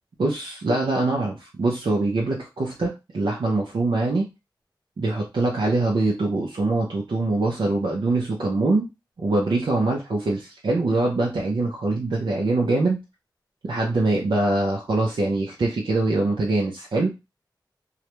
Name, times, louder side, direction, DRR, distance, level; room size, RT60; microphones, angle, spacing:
voice 1, 0.2-4.3 5.0-8.9 9.2-13.0 13.6-17.1, right 2 dB, 75° right, -2 dB, 0.5 m, -23 dB
2.4 x 2.0 x 2.9 m, 0.25 s
cardioid pair, 40°, 8 cm